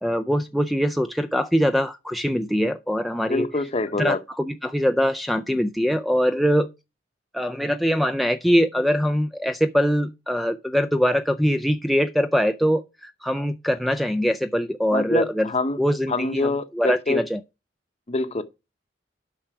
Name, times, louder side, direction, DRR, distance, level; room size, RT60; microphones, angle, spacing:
voice 1, 0.0-3.5 4.0-6.7 7.3-15.5 15.8-17.4, equal, ahead, 0.4 m, -23 dB
voice 2, 3.3-4.2 14.9-15.8 16.1-17.2 18.1-18.4, left 2 dB, 35° left, 0.8 m, -25 dB
8.9 x 5.7 x 4.8 m
head